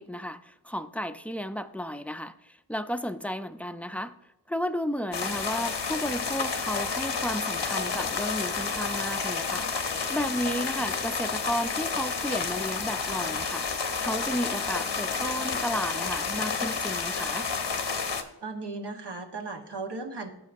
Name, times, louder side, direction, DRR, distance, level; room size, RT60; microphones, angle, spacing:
voice 1, 0.0-4.2 4.5-9.7 10.1-13.6 14.0-17.5, equal, 5° left, 11 dB, 0.4 m, -33 dB
sound 1, 5.1-18.2, left 5 dB, 80° left, 0.9 m, -30 dB
voice 2, 18.4-20.3, right 3 dB, 75° right, 3 dB, 1.3 m, -36 dB
14.0 x 5.9 x 2.6 m, 0.91 s
wide cardioid pair, 40°, 42 cm